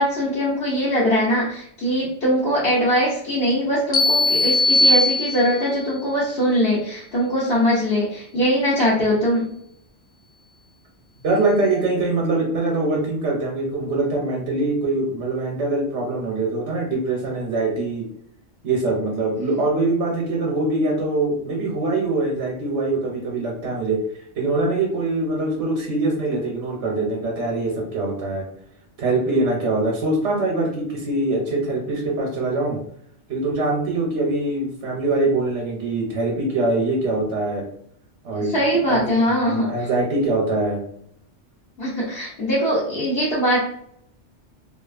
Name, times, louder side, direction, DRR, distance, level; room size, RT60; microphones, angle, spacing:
voice 1, 0.0-9.5 38.4-39.9 41.8-43.6, equal, 60° left, -8 dB, 1.0 m, -21 dB
sound 1, 3.9-5.8, left 2 dB, 45° left, 0.5 m, -19 dB
voice 2, 11.2-18.1 18.6-24.0 24.4-28.4 29.0-32.8 33.3-37.6 38.2-38.6 38.9-39.0 39.4-40.8, right 2 dB, 85° right, -1 dB, 1.0 m, -23 dB
2.7 x 2.4 x 2.4 m, 0.68 s
omnidirectional pair, 1.2 m